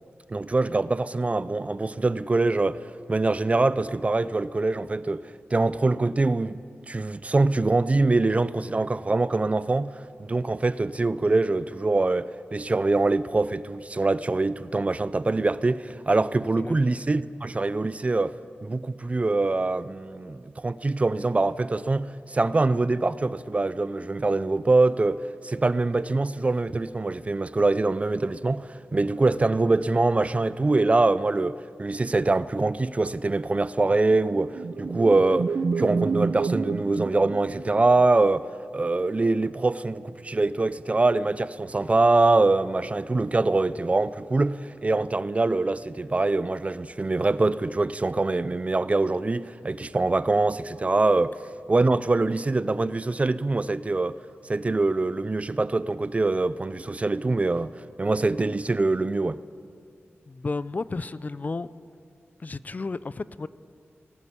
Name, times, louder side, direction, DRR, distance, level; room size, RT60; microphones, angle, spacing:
voice 1, 0.3-2.8 3.1-5.2 5.5-6.6 6.9-38.5 38.7-51.4 51.7-54.2 54.5-57.7 58.0-59.4, right 3 dB, 30° right, 0.5 m, -24 dB
sound 1, 34.5-38.0, right 4 dB, 65° right, 0.8 m, -29 dB
voice 2, 60.3-61.7 62.4-63.5, left 3 dB, 35° left, 0.5 m, -32 dB
19.5 x 17.5 x 8.4 m
wide cardioid pair, 130°, 4 cm